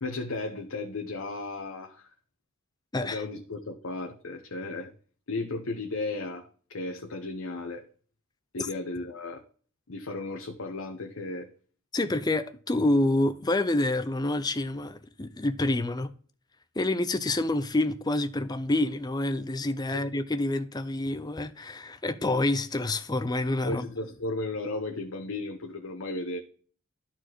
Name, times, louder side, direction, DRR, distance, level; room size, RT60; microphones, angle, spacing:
voice 1, 0.0-2.1 3.0-4.9 5.3-7.8 8.5-9.4 9.9-11.5 19.9-20.0 23.6-26.4, left 2 dB, 80° left, 0.9 m, -35 dB
voice 2, 11.9-16.1 16.8-23.9, left 2 dB, 20° left, 0.5 m, -27 dB
12.5 x 4.4 x 3.0 m
head